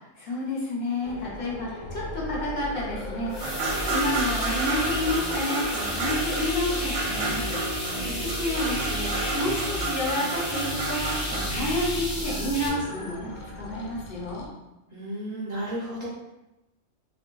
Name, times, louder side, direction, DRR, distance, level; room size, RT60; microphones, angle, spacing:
voice 1, 0.2-13.3 13.6-14.5, left 1 dB, 50° left, -5 dB, 0.8 m, -30 dB
sound 1, 1.0-14.5, left 2 dB, 85° left, 1.0 m, -41 dB
sound 2, 3.3-12.7, equal, 20° left, 0.5 m, -32 dB
sound 3, 3.4-12.2, right 2 dB, 70° right, 0.9 m, -31 dB
voice 2, 7.9-8.3 14.9-16.1, right 1 dB, 50° right, -9 dB, 0.5 m, -33 dB
3.3 x 2.5 x 2.2 m, 0.96 s
omnidirectional pair, 1.3 m